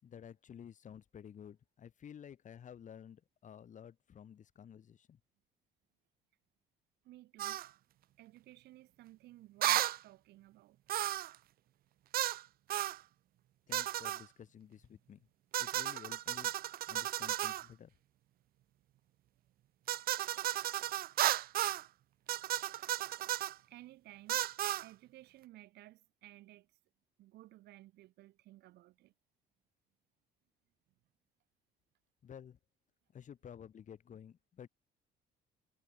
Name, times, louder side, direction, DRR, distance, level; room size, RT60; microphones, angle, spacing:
voice 1, 0.0-5.2 13.7-15.3 15.6-16.5 16.9-17.9 32.2-32.6 33.1-34.7, left 8 dB, 45° left, 6.4 m, -52 dB
voice 2, 7.0-7.7 8.2-10.8 21.3-21.6 23.7-24.5 24.8-26.7 27.2-29.1, right 16 dB, 80° right, 5.3 m, -57 dB
sound 1, 7.4-7.7 9.6-10.0 10.9-11.4 12.1-12.4 12.7-13.0 13.7-14.2 15.5-17.7 19.9-21.8 22.3-23.5 24.3-24.9, right 14 dB, 60° right, 0.8 m, -34 dB
cardioid pair, 110°, 17 cm